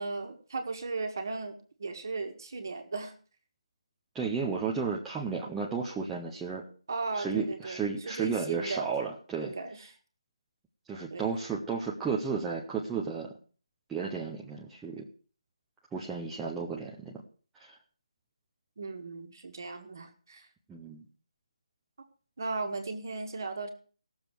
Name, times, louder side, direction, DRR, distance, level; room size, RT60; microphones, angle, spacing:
voice 1, 0.0-3.1 6.9-8.9 9.4-9.8 11.1-11.3 18.8-20.5 22.4-23.7, right 3 dB, 35° right, 6 dB, 1.6 m, -36 dB
voice 2, 4.1-6.6 7.1-9.5 10.9-13.3 13.9-15.1 15.9-17.2 17.6-17.8 20.7-21.0, right 5 dB, 5° right, -4 dB, 0.5 m, -33 dB
17.5 x 7.1 x 4.5 m, 0.40 s
hypercardioid pair, 180°, 3 cm